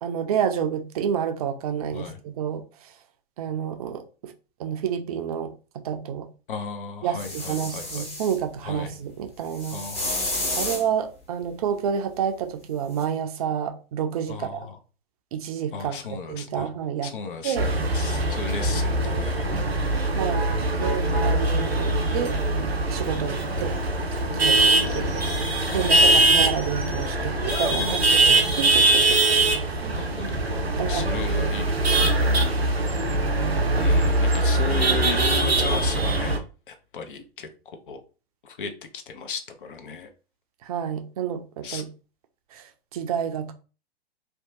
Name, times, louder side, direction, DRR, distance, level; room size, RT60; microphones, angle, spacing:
voice 1, 0.0-2.9 3.4-4.3 4.6-6.3 7.0-9.8 10.6-14.7 15.3-16.0 16.3-17.1 17.4-17.7 20.2-22.4 22.9-23.8 24.3-25.1 25.7-30.3 30.8-31.1 31.9-32.2 32.9-33.5 40.6-41.9 42.5-42.7 42.9-43.5, right 8 dB, 40° right, 0.4 m, -29 dB
voice 2, 6.5-8.1 8.6-8.9 9.7-10.3 14.3-14.8 15.7-16.7 17.0-19.5 20.7-21.3 24.5-25.1 25.7-26.1 27.8-28.3 29.9-30.5 30.9-32.5 33.8-36.3 36.7-38.0 38.4-40.1 41.6-41.8, left 5 dB, 60° left, 0.6 m, -36 dB
sound 1, 7.2-8.4 9.5-10.9 13.0-13.1, left 2 dB, 20° left, 0.9 m, -30 dB
sound 2, 17.6-36.4, right 2 dB, 90° right, 0.6 m, -22 dB
Insect, 23.4-33.2, right 1 dB, 85° left, 0.9 m, -43 dB
2.7 x 2.2 x 2.6 m
figure-of-eight pair, 105°, 30 cm